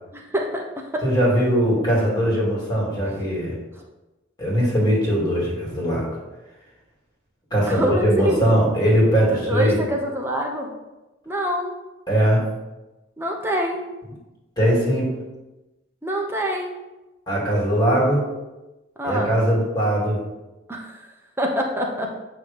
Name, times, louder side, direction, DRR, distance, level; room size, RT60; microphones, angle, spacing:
voice 1, 0.1-1.0 7.7-8.5 9.5-10.7 11.3-11.8 13.2-13.8 16.0-16.7 19.0-19.4 20.7-21.1 21.4-22.2, equal, 10° right, 0 dB, 0.9 m, -25 dB
voice 2, 1.0-3.6 4.4-6.1 7.5-9.8 12.1-12.4 14.6-15.1 17.3-18.3 19.0-20.2, equal, 20° left, -4 dB, 2.3 m, -20 dB
8.4 x 3.2 x 5.2 m, 1.1 s
head